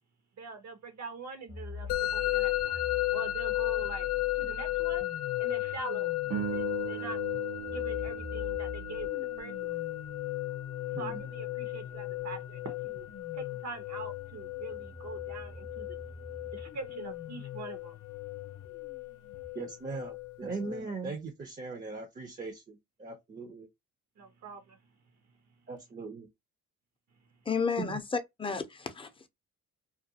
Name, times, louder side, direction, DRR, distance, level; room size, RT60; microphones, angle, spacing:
voice 1, 0.4-2.8 3.1-4.1 4.4-5.1 5.4-7.2 7.7-9.8 10.9-13.1 13.3-15.9 16.5-18.0 24.2-24.8, right 4 dB, 60° right, 0.8 m, -44 dB
sound 1, 1.5-19.5, left 6 dB, 50° left, 0.8 m, -45 dB
Musical instrument, 1.9-20.8, left 17 dB, 90° left, 0.6 m, -35 dB
sound 2, 6.3-10.8, right 9 dB, 90° right, 0.9 m, -40 dB
voice 2, 19.5-23.7 25.7-26.3 27.8-28.0, right 4 dB, 30° right, 0.6 m, -39 dB
voice 3, 27.5-29.3, left 5 dB, 20° left, 0.5 m, -32 dB
2.5 x 2.3 x 2.7 m
cardioid pair, 90°, 30 cm